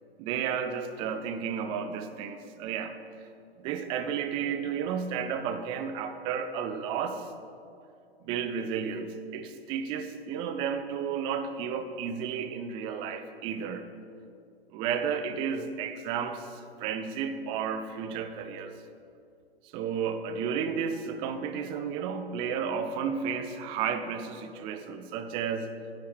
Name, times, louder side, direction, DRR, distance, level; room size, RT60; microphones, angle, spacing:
voice 1, 0.2-2.9 3.6-7.3 8.2-13.9 14.7-18.7 19.7-25.7, right 7 dB, 15° right, 9 dB, 0.4 m, -32 dB
11.5 x 10.5 x 3.5 m, 2.5 s
figure-of-eight pair, 115°, 32 cm